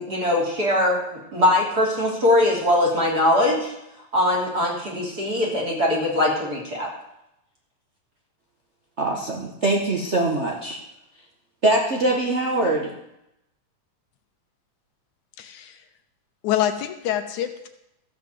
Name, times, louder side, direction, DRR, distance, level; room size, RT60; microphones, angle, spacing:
voice 1, 0.0-3.7 4.1-6.9, left 1 dB, 30° right, -2 dB, 3.4 m, -21 dB
voice 2, 9.0-10.8 11.6-12.9, right 2 dB, 60° right, -1 dB, 0.7 m, -23 dB
voice 3, 15.4-15.8 16.4-17.7, left 11 dB, 80° left, 8 dB, 2.3 m, -26 dB
14.0 x 5.8 x 7.7 m, 0.84 s
omnidirectional pair, 3.5 m